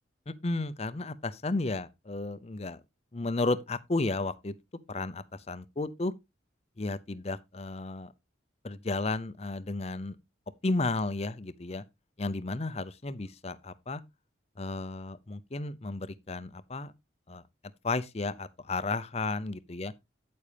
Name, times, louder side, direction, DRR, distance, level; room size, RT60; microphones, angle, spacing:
voice 1, 0.3-2.8 3.1-4.5 4.9-6.1 6.8-8.1 8.6-10.2 10.6-11.8 12.2-14.0 14.6-16.9 17.3-17.4 17.8-19.9, left 2 dB, 30° left, 0.6 m, -33 dB
8.6 x 8.5 x 3.4 m
head